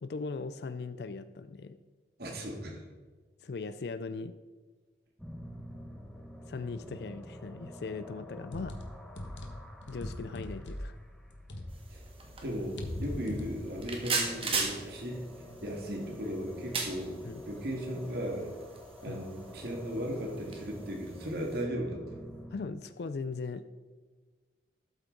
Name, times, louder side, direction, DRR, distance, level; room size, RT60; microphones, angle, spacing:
voice 1, 0.0-1.8 3.4-4.3 6.5-8.8 9.9-11.0 17.2-17.4 19.1-19.2 22.5-23.6, left 4 dB, 60° left, 13 dB, 0.4 m, -39 dB
voice 2, 2.2-2.8 11.9-12.0 12.4-17.2 17.5-18.5 19.0-22.2, equal, 60° right, 0 dB, 1.9 m, -36 dB
sound 1, 5.2-22.6, equal, ahead, 0.9 m, -49 dB
sound 2, 8.4-12.0 12.3-14.0, left 1 dB, 90° left, 1.3 m, -40 dB
sound 3, 11.7-21.6, right 4 dB, 30° right, 1.6 m, -39 dB
12.5 x 8.2 x 3.9 m, 1.4 s
head